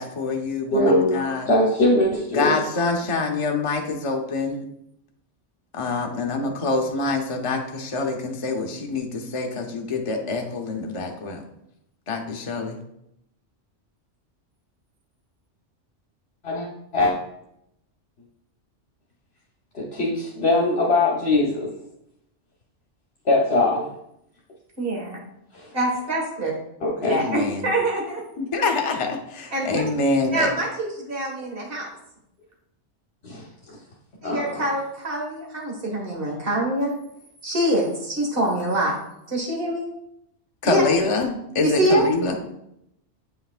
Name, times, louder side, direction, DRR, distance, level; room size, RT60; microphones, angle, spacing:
voice 1, 0.0-1.5 2.3-4.6 5.7-11.4 12.1-12.8 27.0-27.6 28.4-30.5 40.6-42.3, left 3 dB, 35° left, 2 dB, 0.7 m, -25 dB
voice 2, 0.7-2.5 16.4-16.7 16.9-17.1 19.7-21.7 23.2-23.9 25.5-25.7 26.8-27.2 33.2-33.8 34.2-34.7, left 2 dB, 60° left, -4 dB, 1.3 m, -22 dB
voice 3, 24.8-25.2 25.7-26.5 27.1-28.2 29.5-29.7 30.3-31.9 34.2-36.9 37.4-38.9 39.3-39.9 40.6-40.8 41.6-42.0, right 1 dB, 50° right, -2 dB, 1.9 m, -25 dB
8.0 x 5.7 x 2.4 m, 0.78 s
omnidirectional pair, 1.2 m